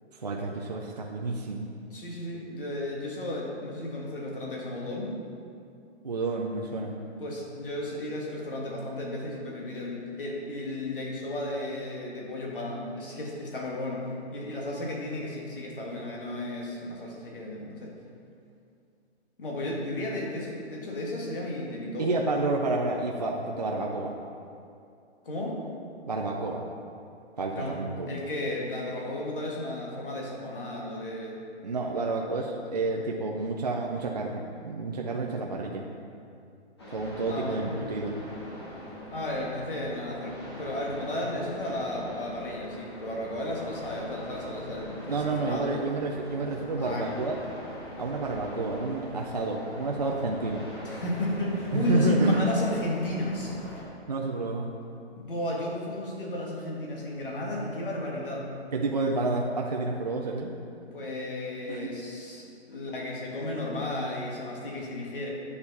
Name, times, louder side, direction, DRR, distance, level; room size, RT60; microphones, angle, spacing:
voice 1, 0.1-1.7 6.0-6.9 22.0-24.1 26.1-26.7 27.4-28.1 31.6-35.8 36.9-38.2 45.1-47.4 48.0-50.7 51.7-52.5 54.1-54.7 58.7-60.5 61.7-61.9, right 2 dB, 40° right, 0 dB, 0.5 m, -29 dB
voice 2, 1.9-5.2 7.2-17.9 19.4-22.1 25.2-25.6 27.6-27.8 28.1-31.4 37.3-37.7 39.1-45.7 46.8-47.1 50.8-53.5 55.2-58.5 60.8-65.3, left 1 dB, 50° left, -2 dB, 2.0 m, -34 dB
sound 1, 36.8-53.8, left 1 dB, 25° left, 1.0 m, -42 dB
9.8 x 6.8 x 4.1 m, 2.5 s
hypercardioid pair, 180°, 34 cm